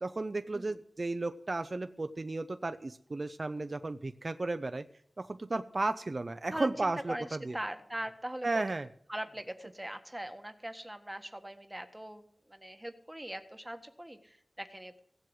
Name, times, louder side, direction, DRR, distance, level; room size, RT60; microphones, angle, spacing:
voice 1, 0.0-4.8 5.2-7.6 8.4-8.9, right 2 dB, 45° right, 9 dB, 0.7 m, -34 dB
voice 2, 6.5-8.8 9.1-15.0, right 1 dB, 10° right, 8 dB, 1.5 m, -41 dB
16.5 x 7.7 x 8.0 m, 0.65 s
wide cardioid pair, 80°, 0 cm